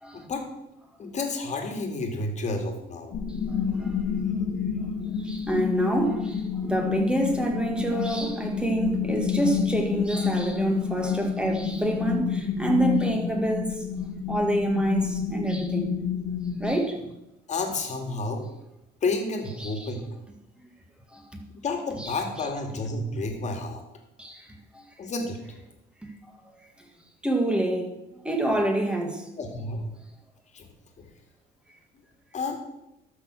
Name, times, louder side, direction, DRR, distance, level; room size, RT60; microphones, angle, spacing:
voice 1, 0.1-0.4 1.0-3.2 17.5-18.5 19.0-20.1 21.5-23.8 25.0-25.4 29.4-29.9 30.5-30.7 31.0-31.1 32.3-32.6, left 3 dB, 40° left, 3 dB, 2.3 m, -30 dB
sound 1, 3.1-16.8, left 7 dB, 80° left, 1.8 m, -29 dB
voice 2, 3.5-4.0 5.2-13.8 14.3-15.9 16.6-17.1 19.6-19.9 21.1-21.4 22.0-22.1 24.2-24.5 24.7-24.8 26.0-26.1 27.2-27.9 28.2-29.3, right 1 dB, 5° right, 2 dB, 2.0 m, -27 dB
12.5 x 6.4 x 6.3 m, 0.90 s
cardioid pair, 125°, 18 cm